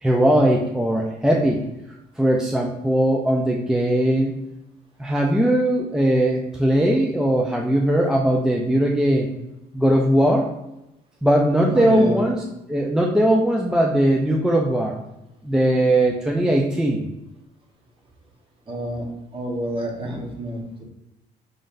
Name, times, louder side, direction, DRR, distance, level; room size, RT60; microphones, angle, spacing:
voice 1, 0.0-1.6 2.2-4.4 5.0-9.3 9.7-10.5 11.2-12.4 12.7-14.9 15.4-17.1 20.1-20.2, right 1 dB, 5° right, 0 dB, 0.4 m, -19 dB
voice 2, 11.7-12.2 18.7-19.1 19.3-20.8, right 1 dB, 30° right, 0 dB, 1.1 m, -29 dB
5.1 x 3.7 x 2.5 m, 0.90 s
cardioid pair, 110°, 17 cm